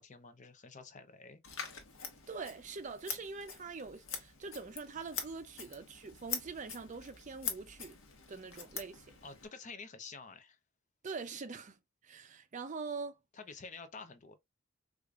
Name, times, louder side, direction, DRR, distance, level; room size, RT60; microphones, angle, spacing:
voice 1, 0.0-1.4 5.6-5.7 9.2-10.6 13.3-14.4, left 4 dB, 35° left, 0.6 m, -49 dB
Scissors, 1.4-9.5, left 6 dB, 65° left, 1.2 m, -44 dB
voice 2, 2.3-8.0 8.3-9.2 11.0-13.2, right 4 dB, 35° right, 0.5 m, -44 dB
4.7 x 2.5 x 2.3 m
head